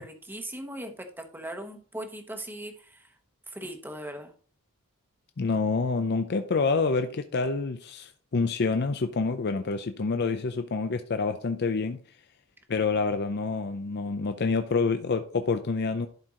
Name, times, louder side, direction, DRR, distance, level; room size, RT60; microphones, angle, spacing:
voice 1, 0.0-3.1 3.5-4.3, right 1 dB, 10° right, 1.0 m, -39 dB
voice 2, 5.4-12.0 12.7-16.1, left 4 dB, 50° left, 0.5 m, -27 dB
11.5 x 4.5 x 3.7 m
head